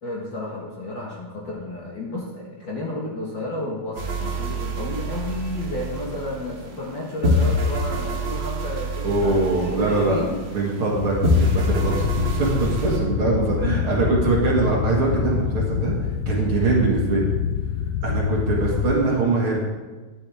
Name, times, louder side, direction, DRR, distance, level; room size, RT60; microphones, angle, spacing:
voice 1, 0.0-10.3, left 1 dB, 45° left, -3 dB, 1.8 m, -32 dB
sound 1, 3.9-6.9 7.2-10.9 11.2-13.0, left 1 dB, 80° right, 0.5 m, -26 dB
voice 2, 9.0-10.2 10.5-15.9 16.3-17.3 18.0-19.6, right 3 dB, 50° right, -3 dB, 2.3 m, -22 dB
sound 2, 10.9-19.0, left 10 dB, 85° left, 2.0 m, -26 dB
12.5 x 10.5 x 3.5 m, 1.2 s
omnidirectional pair, 3.5 m